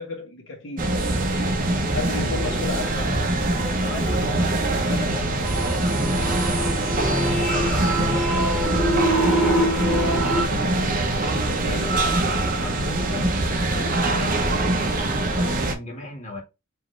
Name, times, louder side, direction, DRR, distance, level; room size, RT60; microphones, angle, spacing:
voice 1, 0.0-1.5 1.9-2.9 3.9-4.3 11.6-11.9, left 4 dB, 65° left, 1.6 m, -33 dB
sound 1, 0.8-15.7, right 2 dB, 40° right, 0.9 m, -23 dB
voice 2, 2.6-3.2 3.6-5.3 5.9-8.9 9.3-10.7 11.6-13.4 13.7-16.4, left 1 dB, 35° left, 1.7 m, -37 dB
sound 2, 5.4-10.4, right 1 dB, 5° right, 1.2 m, -24 dB
4.7 x 3.1 x 3.3 m
head